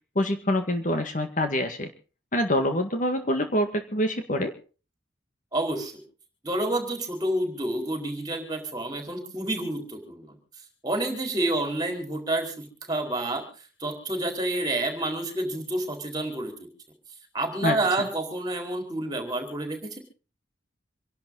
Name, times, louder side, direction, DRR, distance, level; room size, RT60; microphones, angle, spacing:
voice 1, 0.2-1.9 2.3-4.5 17.6-18.1, left 1 dB, 45° left, 7 dB, 1.9 m, -26 dB
voice 2, 5.5-5.9 6.4-10.3 10.8-13.4 13.8-16.5 17.3-20.0, right 1 dB, 20° right, 3 dB, 4.8 m, -29 dB
27.0 x 12.0 x 4.0 m, 0.36 s
head